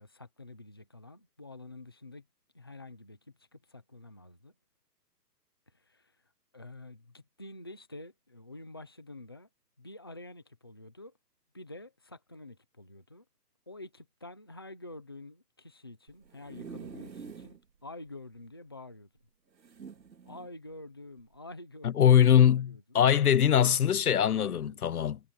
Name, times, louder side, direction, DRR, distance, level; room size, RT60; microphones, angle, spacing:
voice 1, 0.0-2.3 2.5-4.5 5.7-6.2 6.5-9.5 9.8-11.2 11.5-13.2 13.7-19.1 20.2-22.0 22.4-22.8 24.3-24.8, left 2 dB, 15° left, 0.7 m, -48 dB
sound 1, 16.1-17.6 18.1-18.2 18.4-18.5 19.6-20.5 21.2-21.4, right 5 dB, 85° right, 3.2 m, -46 dB
voice 2, 21.8-25.2, left 9 dB, 65° left, 0.7 m, -22 dB
hypercardioid pair, 170°, 49 cm